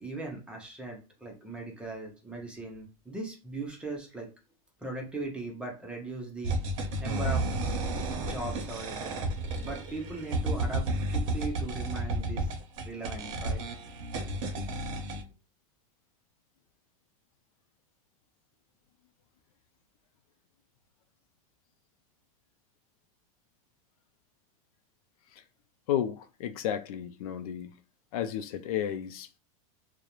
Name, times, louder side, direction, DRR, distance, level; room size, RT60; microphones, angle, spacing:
voice 1, 0.0-4.3 4.8-7.5 8.2-9.2 9.6-12.6 12.8-13.6 15.1-15.2, right 3 dB, 5° right, 0.5 m, -39 dB
sound 1, 6.4-15.2, right 1 dB, 60° right, 0.6 m, -32 dB
voice 2, 25.9-27.7 28.1-29.4, left 10 dB, 85° left, 0.4 m, -33 dB
2.4 x 2.0 x 2.9 m
supercardioid pair, 155°, 18 cm